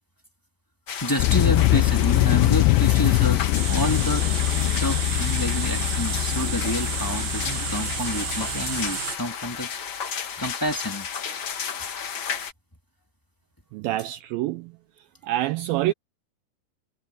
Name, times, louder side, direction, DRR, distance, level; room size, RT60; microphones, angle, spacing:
sound 1, 0.9-12.5, left 7 dB, 70° left, 1.1 m, -33 dB
voice 1, 1.0-4.3 4.6-9.7 10.4-11.1, left 1 dB, 5° left, 1.7 m, -29 dB
sound 2, 1.2-8.9, left 17 dB, 85° left, 2.8 m, -23 dB
sound 3, 3.5-9.2, right 12 dB, 65° right, 2.5 m, -32 dB
voice 2, 13.7-14.7 15.2-15.9, right 15 dB, 85° right, 2.1 m, -26 dB
omnidirectional pair, 4.8 m